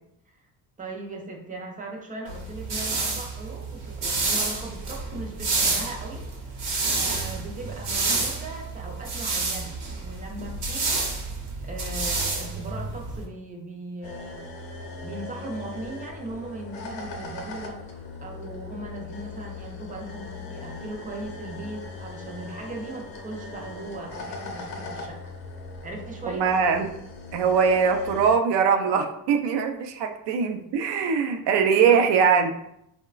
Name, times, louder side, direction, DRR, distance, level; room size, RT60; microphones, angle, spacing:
voice 1, 0.8-9.8 10.0-11.1 11.6-14.5 15.0-25.2 25.8-26.5 31.8-32.1, right 2 dB, 20° right, 1 dB, 0.3 m, -38 dB
sound 1, 2.3-13.3, right 3 dB, 65° right, 0.9 m, -29 dB
sound 2, 14.0-28.4, left 3 dB, 60° left, 0.6 m, -39 dB
voice 2, 26.3-26.9 27.3-32.5, right 6 dB, 85° right, 4 dB, 0.5 m, -22 dB
3.8 x 2.1 x 2.3 m, 0.77 s
cardioid pair, 155°, 40 cm